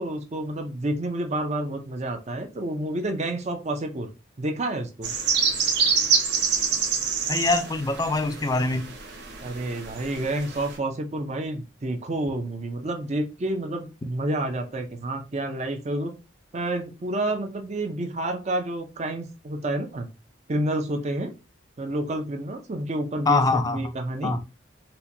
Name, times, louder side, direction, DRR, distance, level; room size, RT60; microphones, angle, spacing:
voice 1, 0.0-4.1 4.4-5.1 9.4-16.2 16.5-20.1 20.5-21.3 21.8-24.3, right 1 dB, 35° right, 0.5 m, -29 dB
sound 1, 5.0-10.8, right 5 dB, 55° right, 0.8 m, -26 dB
voice 2, 7.3-8.9 23.3-24.0 24.2-24.4, left 3 dB, 20° left, 0.3 m, -24 dB
4.3 x 2.2 x 2.6 m
head